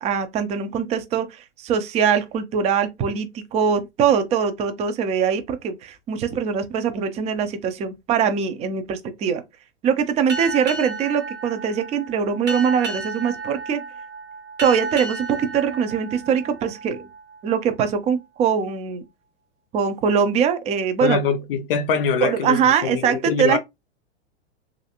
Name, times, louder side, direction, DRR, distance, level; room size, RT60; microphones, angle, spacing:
voice 1, 0.0-9.4 9.8-13.8 14.6-17.0 17.4-19.0 19.7-21.2 22.2-23.6, right 7 dB, 20° right, 0.5 m, -22 dB
Boat Water vehicle, 10.3-17.4, right 3 dB, 85° right, 1.3 m, -33 dB
voice 2, 21.0-23.6, left 6 dB, 55° left, 0.5 m, -23 dB
3.1 x 2.6 x 2.8 m
hypercardioid pair, 105°, 34 cm